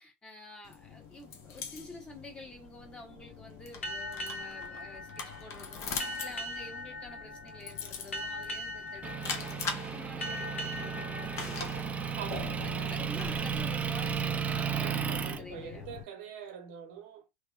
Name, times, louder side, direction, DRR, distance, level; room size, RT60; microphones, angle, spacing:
voice 1, 0.0-11.9 12.4-15.9, left 2 dB, 15° left, 0.9 m, -49 dB
sound 1, 0.6-16.0, left 5 dB, 45° left, 0.6 m, -43 dB
sound 2, 3.8-13.0, left 1 dB, 90° left, 0.4 m, -41 dB
Motor vehicle (road) / Engine, 9.0-15.4, right 7 dB, 20° right, 0.4 m, -34 dB
voice 2, 12.2-13.0 14.8-17.3, right 8 dB, 65° right, 1.0 m, -44 dB
2.7 x 2.1 x 2.3 m
hypercardioid pair, 80°, 7 cm